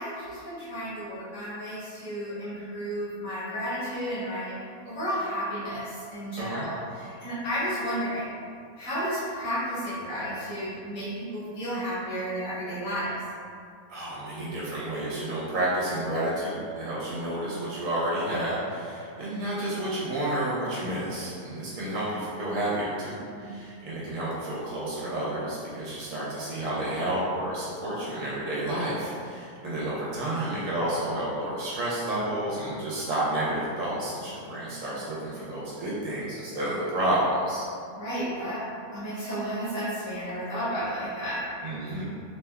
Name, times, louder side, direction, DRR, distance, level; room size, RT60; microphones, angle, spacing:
voice 1, 0.0-4.5 4.8-8.3 8.8-13.2 19.3-19.5 23.2-23.5 38.0-38.6 38.9-41.4, equal, 60° left, -11 dB, 1.5 m, -32 dB
voice 2, 6.4-6.7 13.9-37.6 41.6-42.1, right 1 dB, 65° right, -7 dB, 1.0 m, -30 dB
3.4 x 3.0 x 2.2 m, 2.4 s
omnidirectional pair, 1.6 m